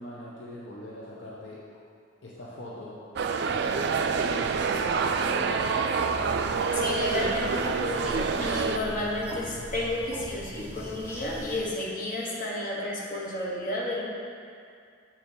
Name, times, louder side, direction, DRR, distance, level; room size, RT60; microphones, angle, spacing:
voice 1, 0.0-1.6 2.2-3.0 3.4-4.6 5.1-5.8, left 1 dB, 65° left, -6 dB, 0.8 m, -42 dB
sound 1, 3.2-8.8, right 5 dB, 55° right, 0.3 m, -27 dB
sound 2, 6.2-11.6, equal, 10° left, 0.9 m, -41 dB
voice 2, 6.7-14.0, left 1 dB, 45° left, -4 dB, 1.1 m, -31 dB
6.8 x 4.3 x 4.4 m, 2.3 s
head